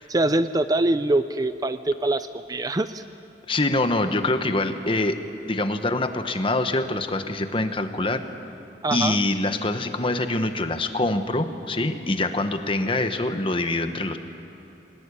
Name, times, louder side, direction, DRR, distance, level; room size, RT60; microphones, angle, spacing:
voice 1, 0.1-3.0 8.8-9.2, right 2 dB, 20° right, 11 dB, 0.5 m, -24 dB
voice 2, 3.5-5.2 5.5-8.2 8.9-14.2, left 2 dB, 30° left, 8 dB, 1.3 m, -24 dB
26.0 x 19.0 x 10.0 m, 2.9 s
head